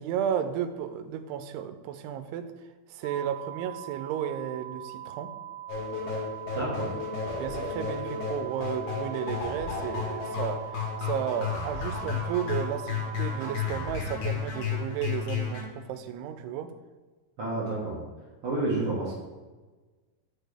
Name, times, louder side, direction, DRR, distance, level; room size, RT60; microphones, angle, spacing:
voice 1, 0.0-2.5 2.9-5.3 7.3-16.7, right 9 dB, 90° right, 10 dB, 2.6 m, -33 dB
sound 1, 3.0-13.7, right 12 dB, 50° left, 3.4 m, -42 dB
sound 2, 5.7-15.6, left 6 dB, 75° left, 3.3 m, -33 dB
voice 2, 6.5-7.0 17.4-18.0 18.4-19.1, right 2 dB, 60° right, -7 dB, 1.5 m, -30 dB
6.6 x 6.5 x 3.3 m, 1.3 s
omnidirectional pair, 4.5 m